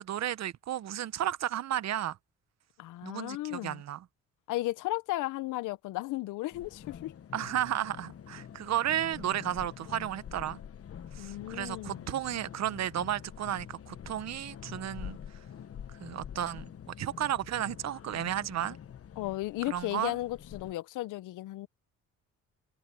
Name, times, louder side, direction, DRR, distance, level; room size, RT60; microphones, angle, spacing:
voice 1, 0.0-2.2 3.0-4.0 7.3-10.6 11.1-15.2 16.0-18.8 19.7-20.2, right 11 dB, 60° right, 1.0 m, -33 dB
voice 2, 2.8-3.8 4.5-7.2 11.2-12.1 19.2-21.7, left 17 dB, 90° left, 0.8 m, -35 dB
sound 1, 6.5-20.7, left 8 dB, 50° left, 1.3 m, -46 dB
cardioid pair, 90°, 30 cm